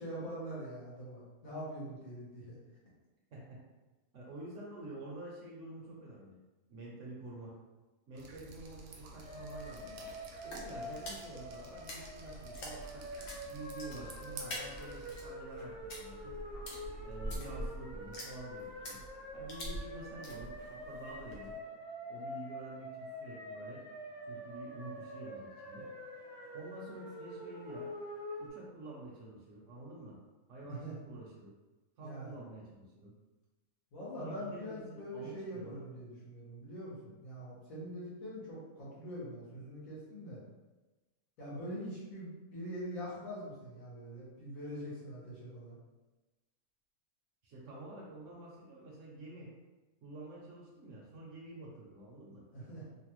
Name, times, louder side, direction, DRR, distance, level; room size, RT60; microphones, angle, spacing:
voice 1, 0.0-2.6 30.6-30.9 32.0-32.4 33.9-40.4 41.4-45.8 52.5-52.9, equal, 70° left, -7 dB, 1.5 m, -43 dB
voice 2, 4.1-6.4 6.7-7.5 8.1-10.0 10.4-13.0 13.5-16.4 17.0-19.0 19.3-21.6 22.1-23.8 24.3-25.9 26.5-27.9 28.4-30.2 30.5-31.5 32.0-33.1 34.1-35.8 47.4-49.5 50.0-52.4, right 2 dB, 65° right, -4 dB, 0.9 m, -48 dB
Drip, 8.1-15.3, right 3 dB, 85° right, 1.1 m, -52 dB
sound 1, 8.5-21.6, equal, 90° left, 1.2 m, -47 dB
sound 2, 9.2-28.5, equal, 25° left, 0.7 m, -46 dB
3.2 x 2.2 x 3.0 m, 1.2 s
omnidirectional pair, 1.6 m